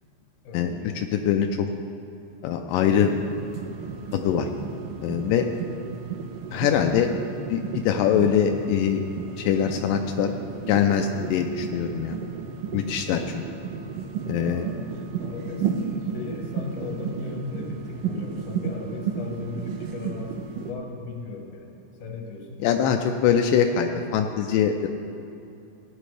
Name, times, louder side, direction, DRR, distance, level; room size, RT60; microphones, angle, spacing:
voice 1, 0.4-1.0 14.3-14.7 15.2-21.7 22.0-22.6, left 4 dB, 60° left, 1 dB, 2.1 m, -37 dB
voice 2, 1.0-1.7 2.4-3.2 4.1-4.5 5.0-5.5 6.5-7.1 7.5-9.0 9.4-10.3 10.7-12.2 12.7-13.4 14.3-14.6 22.6-24.9, left 8 dB, 85° left, 4 dB, 2.2 m, -23 dB
sound 1, 2.8-20.7, right 6 dB, 85° right, 2.4 m, -33 dB
17.0 x 9.9 x 3.3 m, 2.7 s
omnidirectional pair, 3.9 m